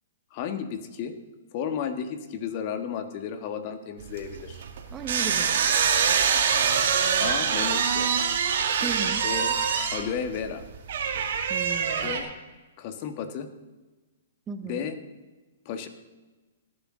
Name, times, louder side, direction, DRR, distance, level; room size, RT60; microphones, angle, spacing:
voice 1, 0.3-1.1 1.5-4.6 7.2-8.1 9.2-9.6 9.9-10.6 11.9-12.4 12.8-13.5 14.6-15.0 15.6-15.9, left 7 dB, 45° left, 9 dB, 1.4 m, -33 dB
sound 1, 4.0-12.2, right 7 dB, 65° right, 1.8 m, -25 dB
voice 2, 4.9-5.6 8.8-9.3 11.5-12.2 14.5-14.9, right 6 dB, 20° right, 9 dB, 0.9 m, -36 dB
17.5 x 9.7 x 3.8 m, 1.2 s
hypercardioid pair, 130°, 0 cm